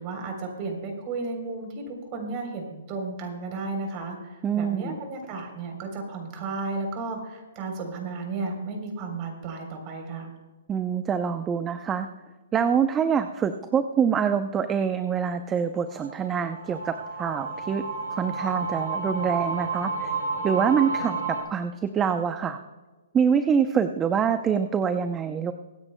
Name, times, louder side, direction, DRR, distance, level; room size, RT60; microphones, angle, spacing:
voice 1, 0.0-10.3, right 3 dB, 35° right, 3 dB, 3.5 m, -33 dB
voice 2, 4.4-4.9 10.7-12.1 12.5-17.8 18.1-20.1 20.4-22.6 23.1-25.5, right 7 dB, 15° right, 9 dB, 0.6 m, -25 dB
sound 1, 15.7-21.4, right 4 dB, 65° right, 3.3 m, -31 dB
24.0 x 9.6 x 2.2 m, 1.2 s
hypercardioid pair, 140°, 0 cm